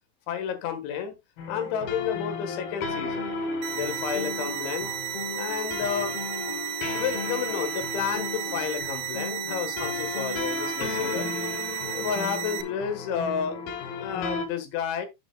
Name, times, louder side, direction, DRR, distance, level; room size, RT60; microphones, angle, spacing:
voice 1, 0.3-1.1 1.5-3.3 3.7-4.9 5.4-6.2 6.9-11.3 11.9-13.7 14.0-15.1, left 8 dB, 85° left, 3.9 m, -31 dB
sound 1, 1.4-14.5, left 4 dB, 70° left, 3.0 m, -34 dB
sound 2, 3.6-12.6, right 13 dB, 85° right, 3.1 m, -34 dB
9.9 x 6.9 x 2.3 m
omnidirectional pair, 5.2 m